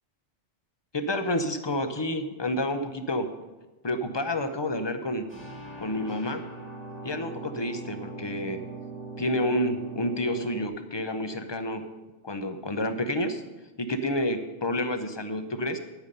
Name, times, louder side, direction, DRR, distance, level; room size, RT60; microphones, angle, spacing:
voice 1, 0.9-3.3 3.8-5.3 5.8-6.4 7.0-8.6 9.2-11.8 12.2-13.4 13.8-15.8, left 1 dB, 30° left, 9 dB, 0.6 m, -29 dB
sound 1, 5.3-10.7, right 2 dB, 10° left, 1.7 m, -40 dB
10.0 x 9.0 x 5.4 m, 1.1 s
omnidirectional pair, 1.2 m